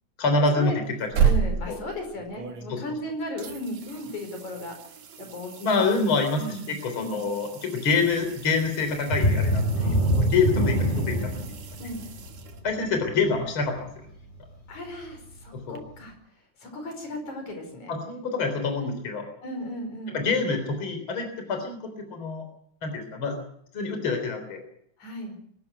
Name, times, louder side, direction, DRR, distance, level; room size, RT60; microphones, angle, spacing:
voice 1, 0.2-1.3 1.7-1.8 2.7-2.8 5.6-9.7 10.2-11.6 12.6-13.9 15.5-15.8 17.9-19.2 20.1-22.4 22.8-23.4 23.7-24.6, left 4 dB, 45° left, 6 dB, 4.3 m, -26 dB
sound 1, 0.8-3.0 3.4-13.0 15.8-15.9, right 7 dB, 65° right, 3.0 m, -33 dB
voice 2, 1.2-4.8 5.2-6.0 6.4-7.3 9.8-10.1 11.8-12.1 14.7-16.1 16.6-17.9 18.8-18.9 19.4-20.2 25.0-25.4, left 1 dB, 80° left, 4 dB, 6.5 m, -36 dB
sound 2, 9.0-14.5 14.9-15.1 15.6-15.7, equal, 15° left, 5.8 m, -25 dB
23.5 x 12.0 x 9.3 m, 0.68 s
omnidirectional pair, 3.3 m